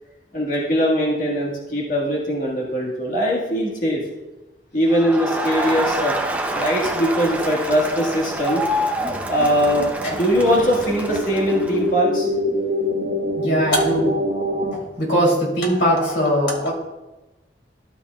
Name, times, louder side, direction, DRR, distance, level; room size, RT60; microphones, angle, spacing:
voice 1, 0.3-4.0 4.7-6.1 6.5-8.6 9.3-12.3, equal, 50° left, -3 dB, 1.5 m, -21 dB
Crowd, 4.9-11.9, right 1 dB, 10° right, 0.5 m, -27 dB
sound 1, 8.4-14.7, left 1 dB, 90° right, 1.4 m, -26 dB
voice 2, 13.3-14.1 14.7-16.7, equal, 90° left, -2 dB, 2.9 m, -20 dB
12.0 x 7.0 x 2.3 m, 1.1 s
head